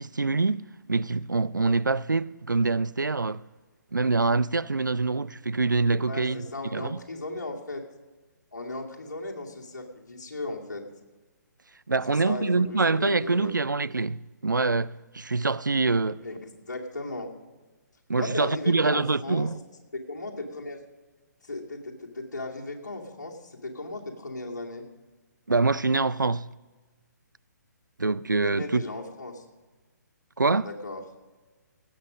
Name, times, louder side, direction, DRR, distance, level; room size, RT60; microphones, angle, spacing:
voice 1, 0.0-3.4 3.9-6.4 6.7-7.0 11.9-16.2 18.1-19.6 25.5-26.5 28.0-28.8 30.4-30.7, right 3 dB, 90° right, 0.4 m, -25 dB
voice 2, 6.0-7.9 8.5-10.9 12.1-13.6 16.2-17.3 18.2-19.5 20.1-20.8 21.4-24.9 28.4-29.5 30.6-31.0, left 2 dB, 65° left, 2.5 m, -36 dB
17.5 x 8.7 x 5.2 m
figure-of-eight pair, 135°, 10 cm